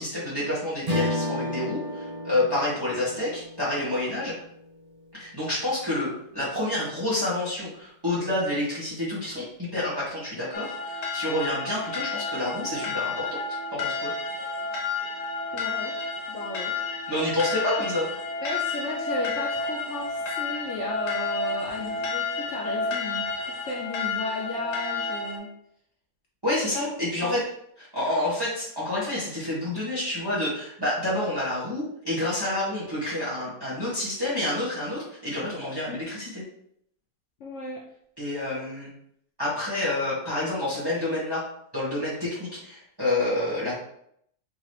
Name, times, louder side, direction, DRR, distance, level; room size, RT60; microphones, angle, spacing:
voice 1, 0.0-4.3 5.1-13.4 13.7-14.1 17.1-18.1 26.4-27.4 27.8-36.4 38.2-38.9 39.4-41.5 41.7-43.7, left 1 dB, 15° right, -10 dB, 1.1 m, -28 dB
Strum, 0.8-5.5, left 1 dB, 40° right, 0.6 m, -33 dB
sound 1, 10.5-25.4, left 4 dB, 90° left, 1.4 m, -31 dB
voice 2, 15.5-15.9 16.3-16.8 18.4-23.3 23.6-25.5 27.2-27.4 37.4-37.8, left 2 dB, 60° left, -2 dB, 0.8 m, -34 dB
4.9 x 2.9 x 3.1 m, 0.70 s
omnidirectional pair, 1.8 m